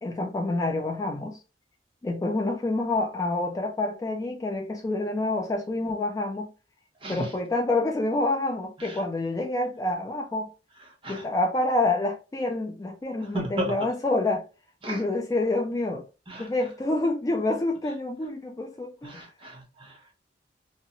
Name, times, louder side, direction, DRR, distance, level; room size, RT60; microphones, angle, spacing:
voice 1, 0.0-1.4 2.0-6.5 7.1-10.5 11.1-14.4 14.9-16.0 16.3-19.3, left 2 dB, 20° left, 0.3 m, -27 dB
voice 2, 7.0-7.3 8.8-9.0 11.0-11.3 13.3-13.7 14.8-15.0 16.3-16.5 19.0-20.1, right 1 dB, 30° right, 0.8 m, -34 dB
2.5 x 2.1 x 2.7 m
head